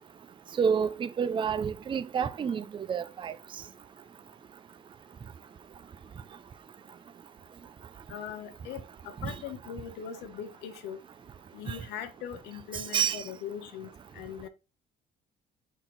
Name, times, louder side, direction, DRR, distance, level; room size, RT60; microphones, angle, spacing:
voice 1, 0.6-3.3 9.2-9.3 12.9-13.2, right 7 dB, 30° right, 0.5 m, -28 dB
voice 2, 8.1-8.8 9.2-11.0 11.5-14.5, left 8 dB, 85° left, 1.1 m, -40 dB
5.9 x 4.4 x 4.0 m
cardioid pair, 110°, 17 cm